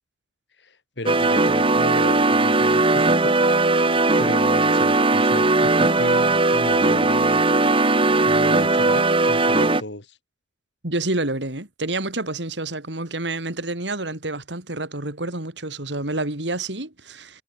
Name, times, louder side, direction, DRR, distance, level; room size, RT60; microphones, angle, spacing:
voice 1, 0.6-3.5 4.2-7.4 8.2-10.2, left 1 dB, 70° left, 4.1 m, -34 dB
sound 1, 1.1-9.8, right 2 dB, 30° right, 2.2 m, -18 dB
voice 2, 10.8-17.4, right 2 dB, 70° right, 3.6 m, -28 dB
head